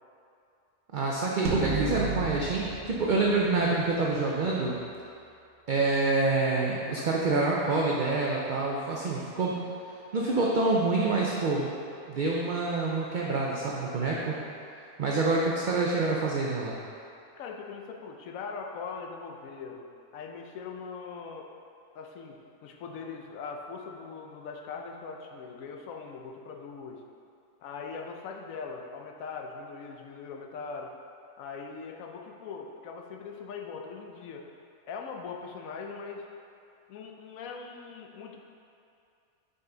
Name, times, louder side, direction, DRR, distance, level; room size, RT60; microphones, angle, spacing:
voice 1, 0.9-4.8 5.7-9.6 10.1-11.7 12.1-14.4 15.0-16.8, right 3 dB, 60° right, -3 dB, 0.5 m, -27 dB
sound 1, 1.5-4.0, right 5 dB, 85° right, 1.2 m, -33 dB
voice 2, 17.4-19.9 20.1-21.5 21.9-27.0 27.6-30.9 31.4-34.4 34.9-36.3 36.9-38.4, left 5 dB, 75° left, 1 dB, 1.0 m, -41 dB
5.6 x 5.5 x 3.9 m, 2.6 s
omnidirectional pair, 1.5 m